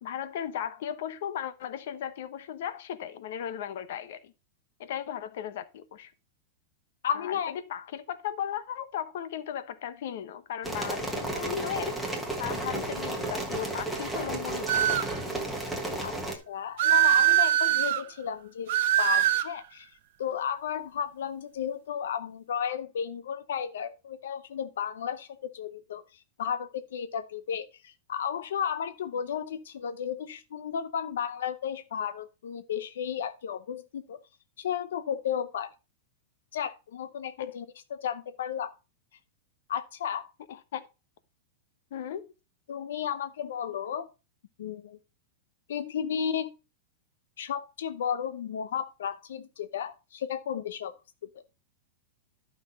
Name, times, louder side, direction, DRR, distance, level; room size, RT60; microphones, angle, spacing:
voice 1, 0.0-4.3 4.8-6.1 7.1-12.1 12.4-15.4 40.5-40.8 41.9-42.3, left 9 dB, 55° left, 1.0 m, -36 dB
voice 2, 7.0-7.5 16.0-16.2 16.5-19.9 20.2-34.2 34.6-35.7 36.5-38.7 39.7-40.3 42.7-44.1 44.6-45.0 45.7-46.5 47.4-50.9, left 8 dB, 85° left, 0.7 m, -33 dB
sound 1, 10.6-16.4, right 2 dB, ahead, 1.3 m, -33 dB
sound 2, 14.7-15.2 16.8-18.0 18.7-19.5, right 13 dB, 50° right, 0.9 m, -22 dB
11.5 x 5.9 x 3.9 m
supercardioid pair, 175°, 0 cm